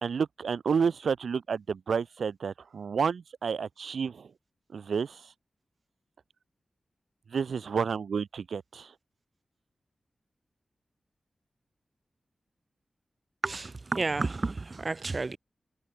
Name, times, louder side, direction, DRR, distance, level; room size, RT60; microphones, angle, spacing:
voice 1, 0.0-4.3 4.7-5.2 7.3-8.9, right 6 dB, 85° right, 1.3 m, -30 dB
voice 2, 13.4-15.4, right 3 dB, 50° right, 2.3 m, -31 dB
cardioid pair, 50°, 0 cm